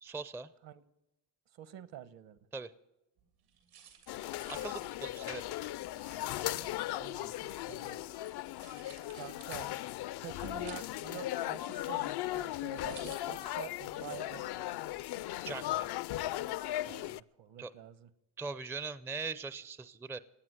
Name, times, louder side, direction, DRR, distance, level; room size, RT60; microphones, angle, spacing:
voice 1, 0.0-0.5 2.5-2.7 4.5-5.4 15.4-15.9 17.6-17.7 18.4-20.2, right 4 dB, 5° right, 15 dB, 0.4 m, -40 dB
voice 2, 1.5-2.4 4.6-4.8 6.4-8.0 9.1-9.7 10.2-14.8 16.8-18.1, right 11 dB, 60° right, 15 dB, 1.2 m, -48 dB
sound 1, 3.2-13.9, right 8 dB, 85° right, 3.3 m, -58 dB
sound 2, 4.1-17.2, left 15 dB, 55° left, 0.5 m, -37 dB
17.5 x 9.3 x 7.8 m, 0.95 s
cardioid pair, 95°, 50 cm